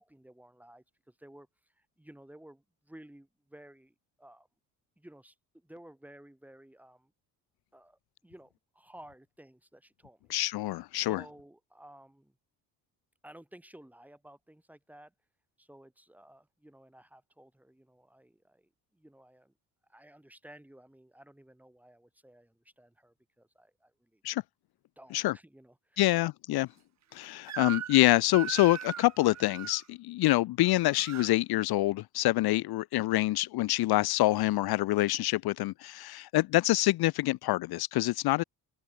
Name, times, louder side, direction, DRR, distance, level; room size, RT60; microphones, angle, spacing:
voice 1, 0.0-4.5 5.0-7.1 7.7-10.3 10.9-12.4 13.2-15.1 15.6-19.5 19.9-24.2 25.0-26.0, right 1 dB, 5° right, 5.1 m, -55 dB
voice 2, 10.3-11.2 24.2-24.4 25.1-25.3 26.0-26.7 27.1-38.4, left 17 dB, 65° left, 0.8 m, -26 dB
Crying sobbing / Screech, 27.5-28.0 28.3-29.8 30.6-31.3, right 10 dB, 40° right, 1.3 m, -39 dB
cardioid pair, 130°, 40 cm